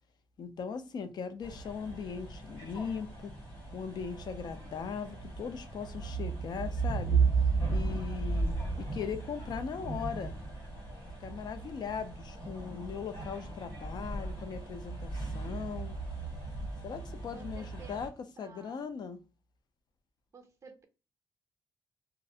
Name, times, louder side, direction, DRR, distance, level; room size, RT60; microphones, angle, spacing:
voice 1, 0.4-3.3 3.7-7.2 7.7-10.3 11.2-15.9 16.8-18.1 18.4-19.2, left 6 dB, 55° left, 0.4 m, -39 dB
sound 1, 1.4-18.1, right 4 dB, 80° left, 1.4 m, -35 dB
voice 2, 12.3-13.2 17.2-18.1 18.4-18.8 20.3-20.8, right 5 dB, 35° right, 0.5 m, -54 dB
2.5 x 2.0 x 2.6 m
cardioid pair, 120°, 9 cm